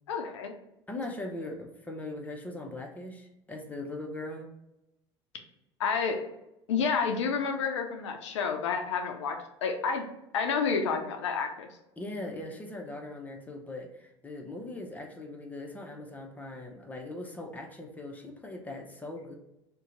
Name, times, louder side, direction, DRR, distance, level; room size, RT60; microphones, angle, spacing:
voice 1, 0.1-0.5 5.8-6.2 6.7-10.1 10.3-11.7, left 5 dB, 80° left, 4 dB, 0.4 m, -29 dB
voice 2, 0.9-4.5 12.0-19.3, left 2 dB, 10° left, 1 dB, 0.7 m, -40 dB
2.7 x 2.2 x 3.8 m, 0.86 s
hypercardioid pair, 75°, 15 cm